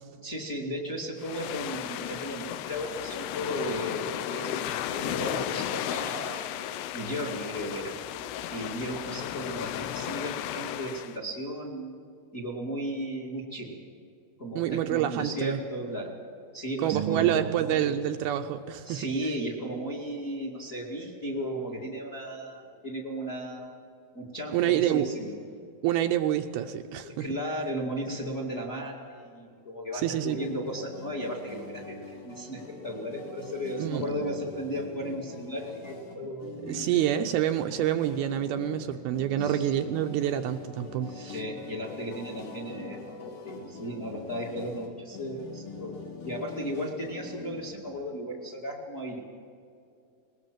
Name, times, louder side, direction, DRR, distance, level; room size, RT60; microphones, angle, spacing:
voice 1, 0.2-6.5 6.9-8.0 8.5-12.0 12.3-13.8 14.4-16.1 16.5-18.0 18.8-23.8 24.1-25.4 27.0-37.1 39.4-39.7 41.1-46.0 46.2-49.2, equal, 25° left, 1 dB, 1.8 m, -35 dB
sound 1, 1.2-11.2, left 11 dB, 85° left, 2.9 m, -34 dB
voice 2, 14.6-15.6 16.8-19.0 24.5-25.1 25.8-27.3 30.0-30.4 33.8-34.1 36.6-41.4, right 11 dB, 80° right, 6 dB, 2.4 m, -27 dB
sound 2, 16.9-19.5, right 10 dB, 50° right, 1.6 m, -37 dB
sound 3, 30.4-47.8, left 4 dB, 65° left, 4.5 m, -43 dB
21.0 x 19.0 x 7.5 m, 2.5 s
omnidirectional pair, 4.8 m